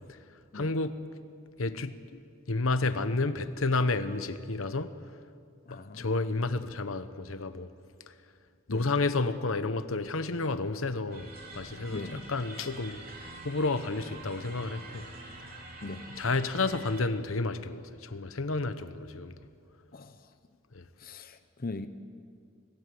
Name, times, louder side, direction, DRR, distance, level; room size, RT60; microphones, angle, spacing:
voice 1, 0.5-1.0 1.6-2.2 2.5-4.9 5.7-7.7 8.1-8.2 8.7-13.0 13.4-15.1 16.2-19.4 20.7-20.8, left 3 dB, 80° left, 11 dB, 1.1 m, -31 dB
voice 2, 5.7-6.1 8.7-8.9 11.9-12.3 15.8-16.1 19.9-20.3 21.0-21.9, left 3 dB, 45° left, 9 dB, 0.8 m, -40 dB
sound 1, 11.1-17.0, right 2 dB, 45° right, 3.8 m, -46 dB
25.5 x 18.5 x 7.8 m, 2.2 s
head